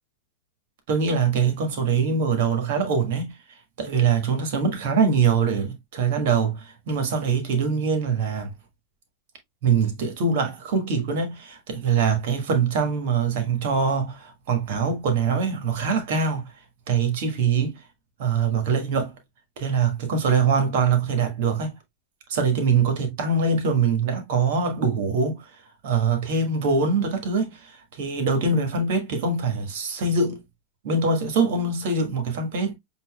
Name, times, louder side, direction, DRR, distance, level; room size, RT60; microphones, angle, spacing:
voice 1, 0.9-3.3 3.8-8.5 9.6-16.4 16.9-17.8 18.2-19.1 19.6-21.7 22.3-25.5 25.8-30.4 30.8-32.7, right 5 dB, 50° right, 1.5 m, -23 dB
7.5 x 2.6 x 2.2 m
figure-of-eight pair, 90°, 0 cm